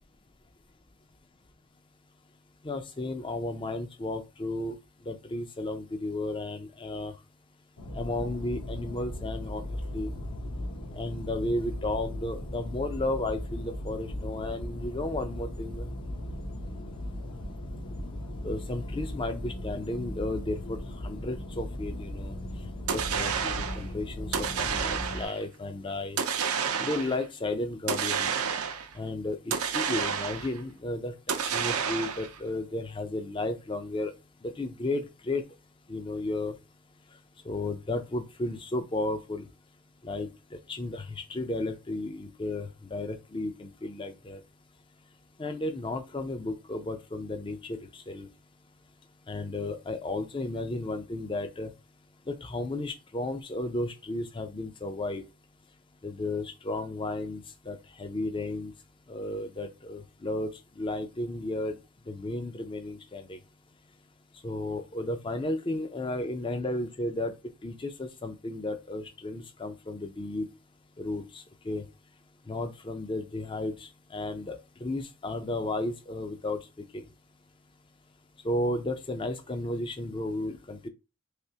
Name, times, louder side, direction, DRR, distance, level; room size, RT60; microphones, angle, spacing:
voice 1, 2.6-4.8 5.1-7.1 7.9-10.1 10.9-15.9 16.6-16.9 18.4-22.3 22.9-26.2 26.8-28.3 28.9-34.1 34.4-35.4 35.9-36.5 37.4-39.5 40.0-44.4 45.4-48.3 49.3-51.7 52.3-55.2 56.0-58.7 59.1-61.7 62.1-63.4 64.4-67.3 67.6-70.5 71.0-71.9 72.5-76.6 76.9-77.1 78.4-80.9, left 2 dB, 20° left, 0.4 m, -33 dB
sound 1, 7.8-25.3, left 1 dB, 70° left, 0.8 m, -37 dB
sound 2, 22.9-23.8 24.3-25.4 26.2-27.2 27.9-28.9 29.5-30.6 31.3-32.4, right 7 dB, 80° right, 0.6 m, -30 dB
3.4 x 2.9 x 2.8 m
head